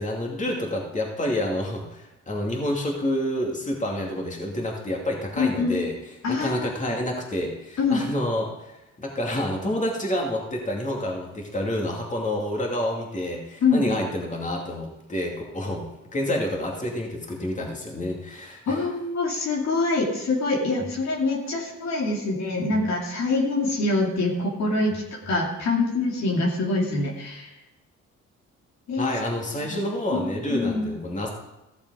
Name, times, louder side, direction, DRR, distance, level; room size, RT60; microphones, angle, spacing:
voice 1, 0.0-5.9 6.3-18.9 29.0-31.3, left 1 dB, 25° left, 0 dB, 2.5 m, -28 dB
voice 2, 5.4-5.8 6.2-6.7 7.8-8.0 13.6-13.8 18.7-27.5 28.9-29.1 29.7-29.8 30.1-30.8, left 3 dB, 60° left, -2 dB, 2.6 m, -25 dB
15.0 x 6.8 x 4.9 m, 0.96 s
cardioid pair, 90°, 30 cm